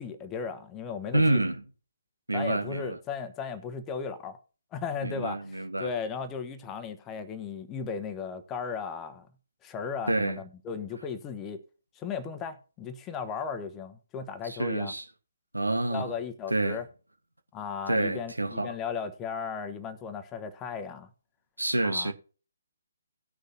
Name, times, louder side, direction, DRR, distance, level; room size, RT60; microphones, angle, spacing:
voice 1, 0.0-1.4 2.3-4.4 4.7-5.4 5.8-9.3 9.6-11.6 11.9-14.9 15.9-16.8 17.5-21.1 21.8-22.1, left 6 dB, 15° left, 1.1 m, -36 dB
voice 2, 1.1-1.6 2.3-3.0 5.0-5.9 10.1-10.4 14.4-15.0 15.5-16.1 16.5-16.8 17.9-18.8 21.6-22.1, right 2 dB, 80° right, 1.4 m, -28 dB
18.5 x 6.5 x 2.8 m
figure-of-eight pair, 135°, 0 cm